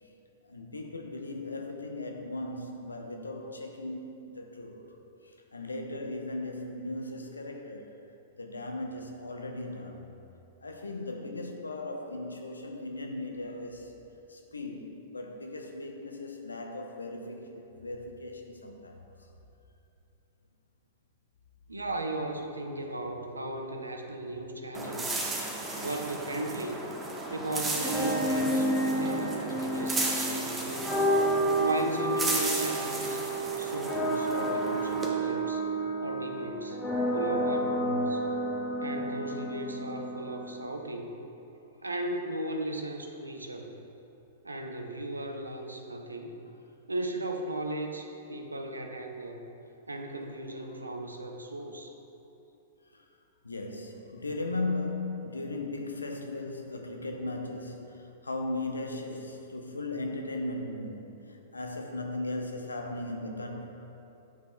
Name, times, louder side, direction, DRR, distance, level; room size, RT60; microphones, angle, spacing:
voice 1, 0.4-5.0 5.2-7.9 8.4-10.1 10.6-13.9 14.3-19.0 52.9-53.1 53.4-63.7, left 2 dB, 85° left, 3 dB, 0.6 m, -37 dB
voice 2, 21.7-25.2 25.7-26.8 27.3-31.0 31.6-33.2 33.6-35.6 36.0-36.8 37.1-38.2 38.8-41.2 41.8-43.8 44.4-46.4 46.9-49.5 49.9-51.9, right 2 dB, 90° right, 4 dB, 0.5 m, -36 dB
sound 1, 24.7-35.1, right 2 dB, 15° right, 0.9 m, -35 dB
sound 2, 27.7-40.7, right 1 dB, 10° left, 0.8 m, -30 dB
9.1 x 5.3 x 2.2 m, 3.0 s
figure-of-eight pair, 105°, 0 cm